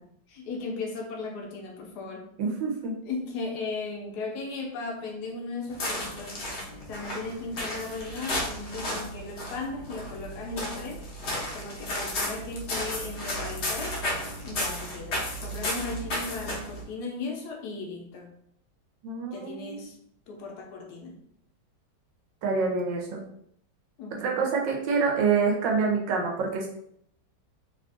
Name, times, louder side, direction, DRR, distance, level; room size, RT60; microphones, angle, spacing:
voice 1, 0.3-2.3 3.0-6.4 6.9-11.0 11.5-14.0 14.4-18.3 19.3-20.0 20.3-21.2 24.0-24.5, left 3 dB, 70° left, 1 dB, 1.1 m, -36 dB
voice 2, 2.4-3.0 19.0-19.9 22.4-23.2 24.2-26.7, right 5 dB, 90° right, 0 dB, 1.4 m, -26 dB
sound 1, 5.7-16.8, left 1 dB, 55° left, 0.8 m, -33 dB
3.3 x 2.4 x 2.5 m, 0.69 s
omnidirectional pair, 1.9 m